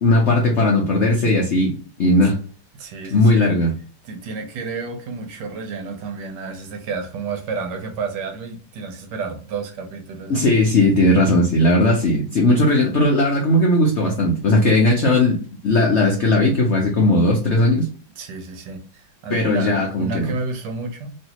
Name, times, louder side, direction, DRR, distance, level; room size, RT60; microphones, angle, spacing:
voice 1, 0.0-1.7 2.0-2.4 3.1-3.7 10.3-15.4 15.6-17.9 19.3-20.3, left 1 dB, 80° left, 0.6 m, -17 dB
voice 2, 2.7-3.6 4.0-10.4 18.2-21.2, right 4 dB, 70° right, 1.2 m, -31 dB
3.1 x 2.7 x 2.8 m
omnidirectional pair, 2.1 m